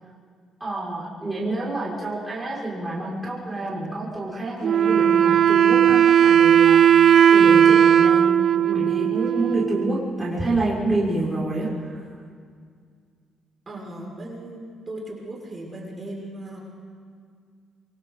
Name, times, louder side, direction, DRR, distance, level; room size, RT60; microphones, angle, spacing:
voice 1, 0.6-12.0, right 2 dB, 10° right, -7 dB, 6.2 m, -28 dB
Wind instrument woodwind instrument, 4.6-10.1, right 9 dB, 60° right, 0.6 m, -16 dB
voice 2, 13.7-16.6, right 1 dB, 30° right, -3 dB, 6.5 m, -37 dB
27.5 x 25.0 x 4.2 m, 2.1 s
cardioid pair, 90°, 0 cm